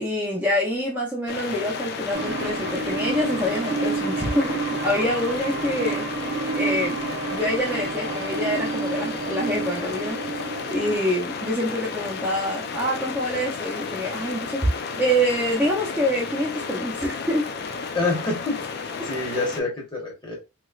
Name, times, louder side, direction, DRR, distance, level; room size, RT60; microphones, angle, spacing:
voice 1, 0.0-7.0 7.3-14.7 15.0-17.5, equal, 5° right, 0.6 m, -26 dB
sound 1, 1.3-19.6, left 5 dB, 50° left, 0.3 m, -33 dB
sound 2, 2.1-11.0, right 4 dB, 60° right, 0.7 m, -30 dB
voice 2, 17.9-20.4, left 3 dB, 20° left, 1.1 m, -27 dB
3.1 x 2.9 x 2.4 m
head